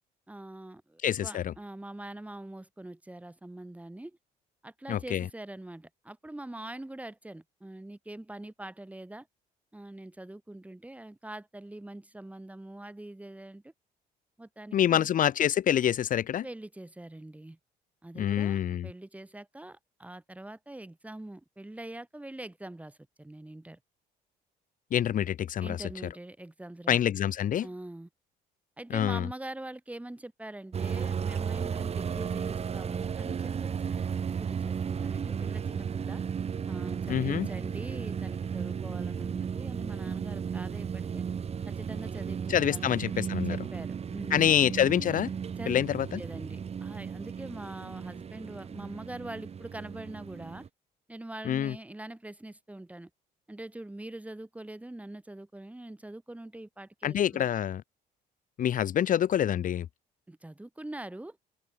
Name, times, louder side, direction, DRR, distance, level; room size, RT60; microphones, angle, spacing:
voice 1, 0.3-4.2 4.6-9.3 9.7-13.7 14.4-15.1 16.4-17.6 18.0-23.8 25.6-27.0 27.6-28.1 28.8-36.2 36.7-41.3 41.7-44.6 45.6-45.8 46.1-50.7 51.1-53.1 53.5-57.5 60.3-61.4, right 1 dB, 10° right, 7.2 m, -43 dB
voice 2, 1.0-1.5 4.9-5.3 14.7-16.4 18.2-18.9 24.9-25.8 26.9-27.7 28.9-29.3 37.1-37.5 42.5-43.6 44.3-45.3 45.7-46.2 51.4-51.7 57.0-57.8 58.6-59.8, left 10 dB, 55° left, 1.7 m, -26 dB
sound 1, 30.7-50.7, right 7 dB, 40° right, 2.5 m, -34 dB
cardioid pair, 110°, 17 cm